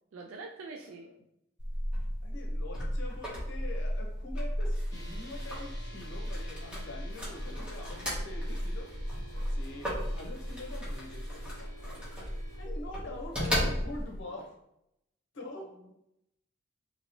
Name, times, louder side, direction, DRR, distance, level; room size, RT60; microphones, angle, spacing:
voice 1, 0.1-1.1 13.0-13.2 15.4-15.9, right 3 dB, 80° right, 2 dB, 0.3 m, -46 dB
sound 1, 1.6-14.2, equal, 5° right, 0.9 m, -35 dB
voice 2, 2.2-8.9 9.5-12.1 12.6-14.5 15.3-15.7, left 2 dB, 65° left, 1 dB, 0.7 m, -44 dB
sound 2, 4.9-12.7, right 1 dB, 20° left, 0.7 m, -52 dB
2.8 x 2.7 x 2.9 m, 0.80 s
head